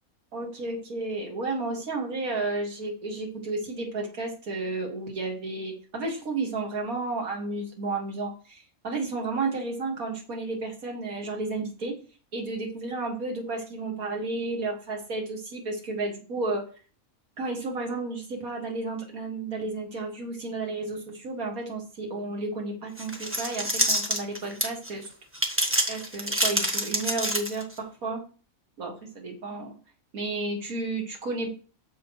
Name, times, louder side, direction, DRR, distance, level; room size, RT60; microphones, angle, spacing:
voice 1, 0.3-11.9 12.3-16.6 17.4-25.1 25.9-28.2 28.8-29.7 30.1-31.5, right 3 dB, 80° right, 0 dB, 2.4 m, -32 dB
sound 1, 23.0-24.9 25.3-27.8, equal, 10° right, 1.2 m, -26 dB
9.4 x 6.9 x 3.1 m, 0.37 s
omnidirectional pair, 1.5 m